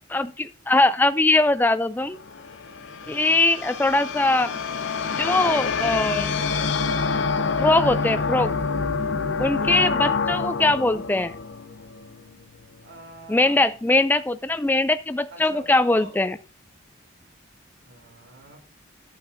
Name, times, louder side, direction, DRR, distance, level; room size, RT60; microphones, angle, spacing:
voice 1, 0.1-2.2 3.1-4.5 5.1-6.4 7.2-7.3 7.6-8.5 9.4-11.3 13.3-16.4, left 2 dB, 10° left, 12 dB, 0.3 m, -21 dB
sound 1, 2.1-12.4, left 5 dB, 75° left, 0.7 m, -27 dB
voice 2, 9.5-10.0 12.8-13.7 15.3-16.2 17.8-18.6, right 2 dB, 70° right, 3 dB, 2.6 m, -44 dB
10.5 x 8.7 x 2.6 m, 0.36 s
head